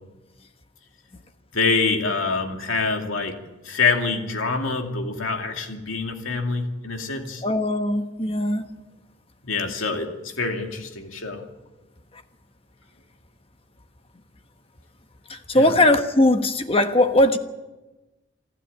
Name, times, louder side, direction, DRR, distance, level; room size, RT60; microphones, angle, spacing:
voice 1, 1.5-3.4 3.6-7.4 9.4-11.4 15.5-15.8, left 4 dB, 80° left, 2.5 m, -25 dB
voice 2, 7.4-8.6 15.5-17.4, left 1 dB, 25° left, 1.2 m, -19 dB
27.5 x 12.5 x 8.8 m
head